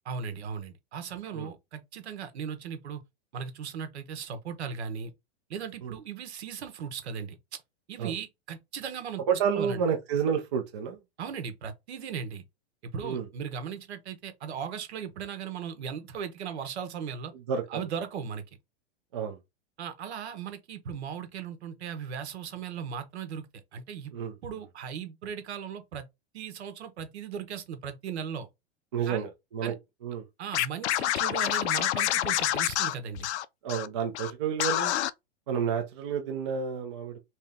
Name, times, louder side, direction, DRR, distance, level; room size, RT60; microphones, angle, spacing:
voice 1, 0.1-3.0 3.3-5.1 5.5-7.4 7.9-9.2 9.5-9.8 11.2-12.4 12.8-17.3 17.7-18.4 19.8-23.5 23.7-24.1 24.4-26.1 26.3-28.5 29.1-29.3 29.6-29.7 30.4-33.3, right 7 dB, 75° right, 1.1 m, -37 dB
voice 2, 9.3-11.0 13.0-13.3 17.3-17.9 19.1-19.4 24.1-24.4 28.9-29.7 30.0-30.2 33.6-34.9 35.5-37.2, right 7 dB, 25° right, 0.4 m, -30 dB
Scratching (performance technique), 30.5-33.9 34.1-34.3 34.6-35.1, left 13 dB, 80° left, 0.5 m, -27 dB
3.1 x 2.8 x 3.6 m
supercardioid pair, 180°, 34 cm